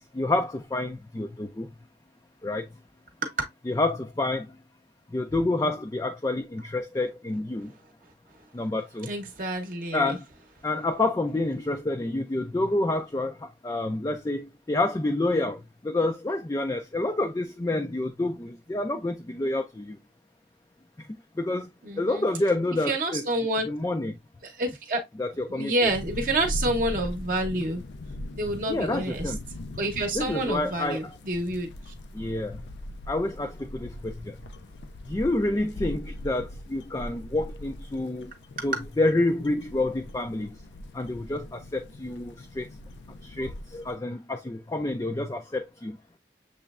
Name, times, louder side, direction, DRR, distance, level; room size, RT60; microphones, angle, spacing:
voice 1, 0.1-1.7 2.4-2.7 3.7-4.5 5.1-7.7 8.5-9.1 9.9-10.2 10.6-20.0 21.4-21.7 22.0-23.3 23.7-24.2 25.2-25.7 28.7-29.4 30.1-31.0 32.1-32.6 33.1-34.4 35.1-38.3 38.6-40.5 40.9-42.7 43.2-46.0, left 2 dB, 20° left, 0.3 m, -28 dB
voice 2, 9.1-10.2 21.8-22.2 22.9-23.7 24.4-25.0 25.5-27.8 28.3-29.3 29.8-31.7, right 1 dB, 50° right, 0.8 m, -28 dB
sound 1, 25.9-44.0, left 1 dB, 85° left, 0.5 m, -40 dB
6.7 x 3.1 x 2.3 m
head